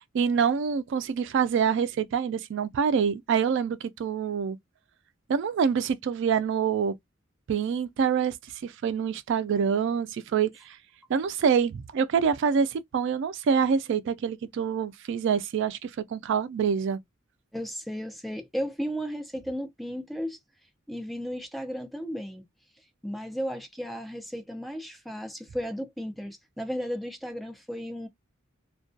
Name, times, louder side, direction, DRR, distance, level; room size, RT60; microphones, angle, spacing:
voice 1, 0.1-4.6 5.3-6.9 7.5-8.4 8.6-10.8 11.1-17.0, right 6 dB, 65° right, 0.3 m, -26 dB
voice 2, 17.5-20.4 20.9-22.4 23.0-28.1, equal, ahead, 0.5 m, -34 dB
2.2 x 2.2 x 2.5 m
head